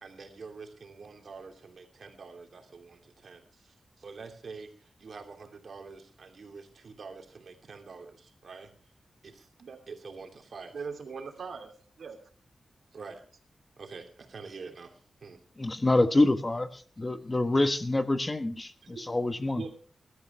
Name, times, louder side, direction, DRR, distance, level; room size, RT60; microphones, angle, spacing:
voice 1, 0.0-8.7 9.2-9.5 9.9-10.7 11.4-11.5 12.0-12.1 12.9-13.3 13.8-15.4, right 4 dB, 70° right, 4 dB, 2.8 m, -46 dB
voice 2, 10.7-12.2 18.8-19.0 19.5-19.7, right 5 dB, 85° right, 6 dB, 2.8 m, -40 dB
voice 3, 15.6-19.6, left 2 dB, 25° left, 10 dB, 1.2 m, -26 dB
21.0 x 12.5 x 3.3 m, 0.40 s
wide cardioid pair, 95°, 0 cm